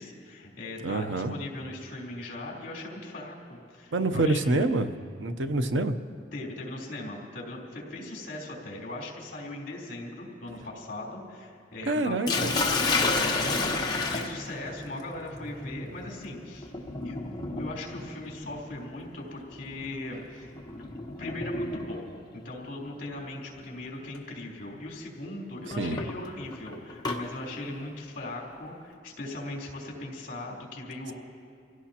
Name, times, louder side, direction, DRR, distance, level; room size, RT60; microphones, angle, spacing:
voice 1, 0.0-4.4 6.3-12.6 12.9-16.7 17.0-20.5 21.2-31.1, left 2 dB, 45° left, -4 dB, 3.7 m, -39 dB
voice 2, 0.8-1.3 3.9-4.9 5.2-5.9 11.9-12.5 25.8-26.0, right 2 dB, 85° right, 9 dB, 0.7 m, -26 dB
Sink (filling or washing), 12.3-22.2 23.3-23.6 24.1-24.2 25.7-27.2, left 3 dB, 20° left, 1.1 m, -31 dB
26.5 x 16.5 x 2.9 m, 2.2 s
head